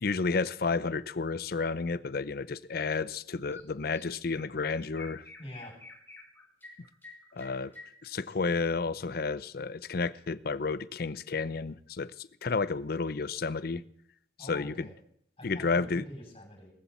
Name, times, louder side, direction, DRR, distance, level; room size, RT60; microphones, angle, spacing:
voice 1, 0.0-5.3 7.3-7.7 8.0-13.8 14.4-14.9 15.4-16.0, left 4 dB, 55° left, 0.6 m, -31 dB
Chirp tweet, 3.5-3.7 3.9-8.5, left 3 dB, 10° left, 3.1 m, -50 dB
voice 2, 5.4-5.8 14.4-15.0 15.4-16.7, left 1 dB, 30° left, 7.7 m, -45 dB
18.5 x 14.5 x 4.3 m
head